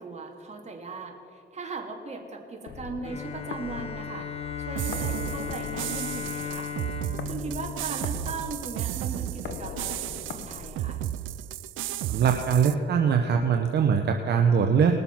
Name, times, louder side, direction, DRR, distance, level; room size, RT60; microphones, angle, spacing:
voice 1, 0.0-4.3 4.7-6.7 7.3-11.0, right 3 dB, 35° right, 2 dB, 2.2 m, -38 dB
sound 1, 2.7-11.6, left 6 dB, 70° left, 1.0 m, -41 dB
Bowed string instrument, 3.0-8.7, left 6 dB, 30° left, 1.1 m, -36 dB
sound 2, 4.7-12.7, right 13 dB, 80° right, 0.5 m, -33 dB
voice 2, 12.1-14.9, right 7 dB, 55° right, 4 dB, 0.9 m, -22 dB
20.0 x 6.9 x 5.8 m, 2.4 s
cardioid pair, 90°, 20 cm